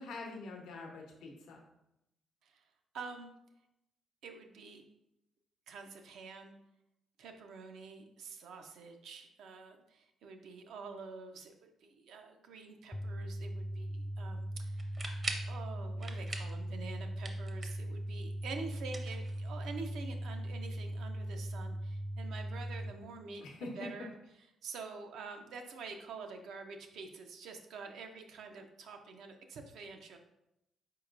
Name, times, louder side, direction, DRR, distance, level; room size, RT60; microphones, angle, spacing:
voice 1, 0.0-1.6 23.4-23.9, left 3 dB, 85° left, -1 dB, 0.8 m, -45 dB
voice 2, 2.9-3.3 4.2-4.8 5.7-6.5 7.2-14.9 15.4-23.4 23.7-24.1 24.6-30.2, right 4 dB, 80° right, 5 dB, 0.6 m, -47 dB
sound 1, 12.9-22.9, right 1 dB, 15° left, 0.4 m, -39 dB
sound 2, 14.8-15.6 16.0-16.6 16.9-17.9 18.8-19.8, right 2 dB, 35° right, 0.7 m, -42 dB
4.6 x 4.4 x 2.5 m, 0.84 s
cardioid pair, 90°, 0 cm